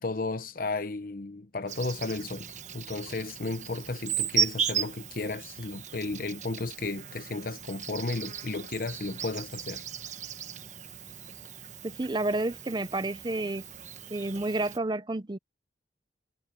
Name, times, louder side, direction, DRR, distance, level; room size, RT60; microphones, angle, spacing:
voice 1, 0.0-9.8, left 3 dB, 55° left, 0.9 m, -34 dB
Insect, 1.7-14.8, right 8 dB, 45° right, 1.2 m, -36 dB
voice 2, 11.8-13.6 14.1-15.4, right 2 dB, 25° right, 0.6 m, -30 dB
head